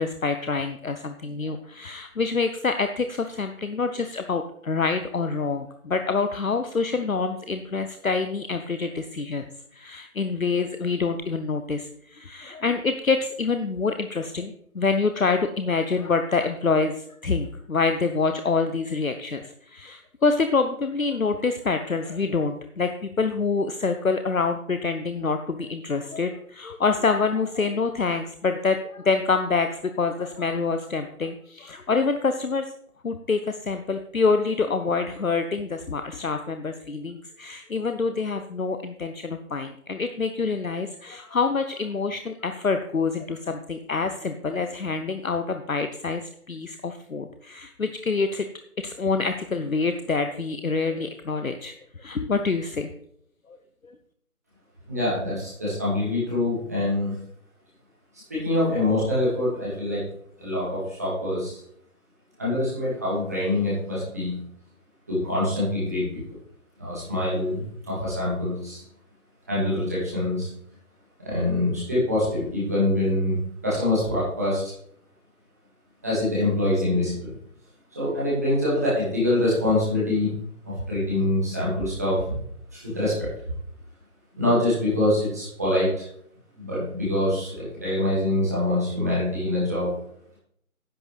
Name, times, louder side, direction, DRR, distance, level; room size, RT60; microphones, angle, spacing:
voice 1, 0.0-9.4 9.8-16.9 17.2-32.6 33.0-46.2 46.5-48.5 48.8-51.7 52.0-52.9, left 4 dB, 65° left, 8 dB, 0.8 m, -26 dB
voice 2, 54.9-57.2 58.3-60.0 60.4-61.6 62.4-64.3 65.1-66.0 66.8-68.8 69.5-70.5 71.2-73.4 73.6-74.6 76.0-77.3 77.9-80.3 80.6-82.4 82.7-83.3 84.4-86.0 86.6-89.9, left 1 dB, 10° right, -8 dB, 2.0 m, -25 dB
10.5 x 8.7 x 3.3 m, 0.68 s
figure-of-eight pair, 165°, 44 cm